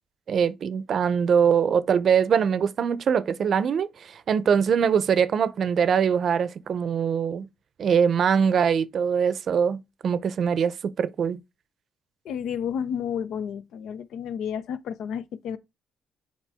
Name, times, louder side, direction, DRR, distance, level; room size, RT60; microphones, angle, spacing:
voice 1, 0.3-7.5 7.8-11.4, right 7 dB, 55° right, 0.6 m, -23 dB
voice 2, 12.2-15.6, left 8 dB, 75° left, 0.6 m, -31 dB
7.3 x 4.5 x 3.5 m
cardioid pair, 90°, 0 cm